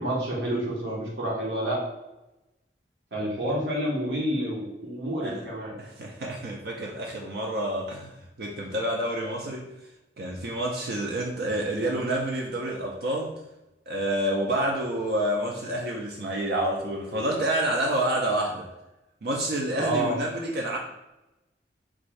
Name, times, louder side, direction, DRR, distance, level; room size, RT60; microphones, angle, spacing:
voice 1, 0.0-1.8 3.1-5.7 19.7-20.1, right 1 dB, 85° right, -4 dB, 1.0 m, -29 dB
voice 2, 5.8-8.1 8.4-9.7 10.2-13.3 13.9-18.7 19.2-20.8, right 1 dB, 60° right, -1 dB, 0.4 m, -28 dB
3.5 x 2.6 x 3.1 m, 0.98 s
head